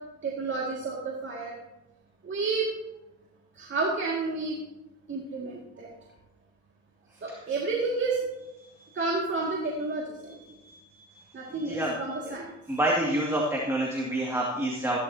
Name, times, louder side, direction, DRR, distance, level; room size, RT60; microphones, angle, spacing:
voice 1, 0.2-1.5 2.2-2.7 3.6-4.6 5.1-5.9 7.2-8.2 9.0-10.3 11.3-12.5, right 3 dB, 40° right, -3 dB, 2.2 m, -30 dB
voice 2, 10.5-12.0 12.2-12.3 12.7-15.0, right 1 dB, 10° right, -3 dB, 2.2 m, -29 dB
14.5 x 12.5 x 2.8 m, 0.97 s
cardioid pair, 90°, 30 cm